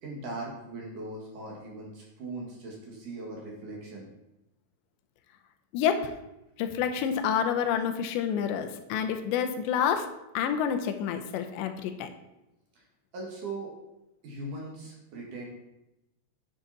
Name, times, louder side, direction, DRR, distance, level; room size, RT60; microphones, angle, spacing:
voice 1, 0.0-4.1 13.1-13.7 14.2-15.5, right 2 dB, 55° right, -2 dB, 2.8 m, -39 dB
voice 2, 5.7-6.1 6.6-10.1 10.3-12.1, left 8 dB, 85° left, 7 dB, 3.0 m, -28 dB
9.9 x 7.0 x 4.2 m, 0.91 s
omnidirectional pair, 5.0 m